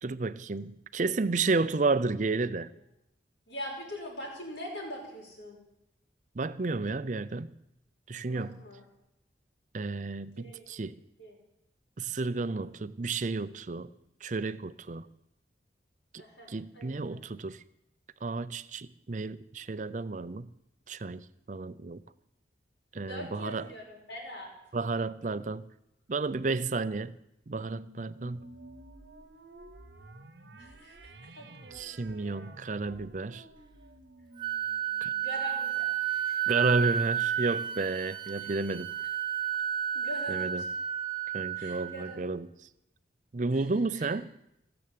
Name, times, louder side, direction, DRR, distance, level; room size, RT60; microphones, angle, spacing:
voice 1, 0.0-2.7 6.4-7.5 8.1-8.6 9.7-10.9 12.0-13.9 14.2-15.1 16.5-17.6 18.2-20.5 20.9-22.0 22.9-23.7 24.7-25.7 26.1-27.1 27.5-28.5 31.7-33.4 35.0-35.1 36.5-38.9 40.3-40.6 41.3-42.5 43.3-44.3, right 3 dB, 40° right, 0.5 m, -32 dB
voice 2, 3.5-5.6 8.3-8.8 10.4-10.6 11.2-11.4 12.3-12.6 16.2-17.3 23.0-24.5 30.6-32.5 35.2-36.4 38.4-38.5 39.9-40.7 41.5-42.2 43.5-43.7 43.9-44.1, equal, 80° left, 5.3 m, -43 dB
sound 1, 27.5-36.3, right 2 dB, 65° right, 1.1 m, -52 dB
Wind instrument woodwind instrument, 34.4-42.1, right 9 dB, 25° right, 0.9 m, -31 dB
17.0 x 6.9 x 8.5 m
head